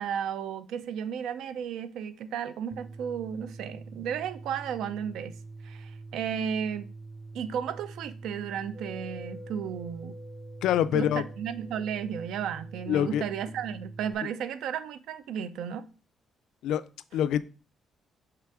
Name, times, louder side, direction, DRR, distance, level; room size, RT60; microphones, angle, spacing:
voice 1, 0.0-5.3 5.6-6.9 7.3-10.2 10.9-15.9, right 8 dB, 85° right, 0.5 m, -34 dB
sound 1, 2.7-14.1, right 3 dB, ahead, 0.5 m, -45 dB
sound 2, 8.7-13.1, left 2 dB, 45° right, 2.8 m, -49 dB
voice 2, 10.6-11.2 12.9-13.2 16.6-16.8 17.1-17.4, left 10 dB, 90° left, 0.3 m, -25 dB
5.8 x 3.4 x 4.7 m
cardioid pair, 175°, 0 cm